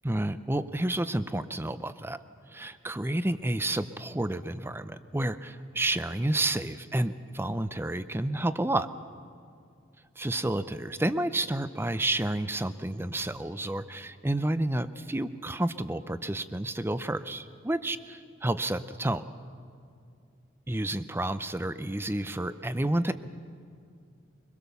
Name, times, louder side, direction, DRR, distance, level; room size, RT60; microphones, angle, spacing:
voice 1, 0.0-2.2 2.5-8.9 10.2-18.0 18.4-19.2 20.7-23.1, right 1 dB, 10° right, 13 dB, 0.6 m, -30 dB
24.0 x 21.5 x 6.9 m, 2.4 s
head